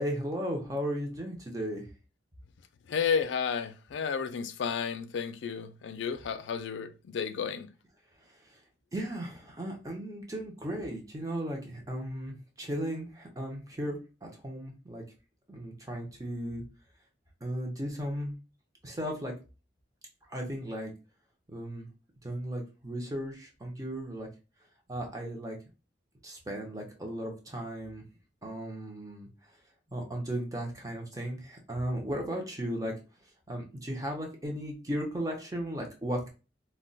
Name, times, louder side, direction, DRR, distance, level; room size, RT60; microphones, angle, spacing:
voice 1, 0.0-1.8 8.9-15.0 15.5-16.6 17.4-18.3 18.8-19.3 20.3-20.9 21.5-21.9 22.2-24.3 24.9-25.6 26.2-28.0 28.4-29.3 29.9-32.9 33.5-36.3, equal, 20° right, 0.6 m, -36 dB
voice 2, 2.9-7.7, left 6 dB, 80° left, 0.4 m, -32 dB
2.2 x 2.2 x 3.9 m
head